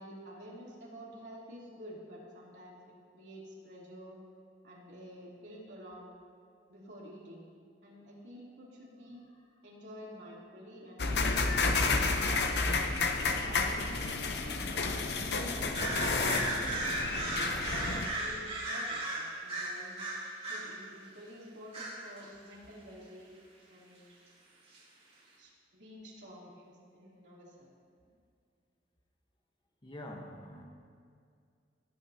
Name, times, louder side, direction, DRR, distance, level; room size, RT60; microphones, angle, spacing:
voice 1, 0.0-2.8 3.1-4.2 4.6-6.1 6.7-7.5 7.8-9.2 9.6-11.2 11.5-11.9 12.3-12.6 13.2-14.2 14.6-20.0 20.5-23.3 23.7-24.1 25.4-27.7, equal, 75° right, -6 dB, 3.1 m, -49 dB
sound 1, 11.0-18.1, left 3 dB, 65° left, 0.8 m, -30 dB
sound 2, 15.6-20.7 21.7-22.2 24.7-24.8, right 2 dB, 35° right, 3.0 m, -36 dB
voice 2, 29.8-30.6, left 1 dB, 25° left, 2 dB, 1.1 m, -46 dB
18.0 x 9.3 x 2.8 m, 2.3 s
head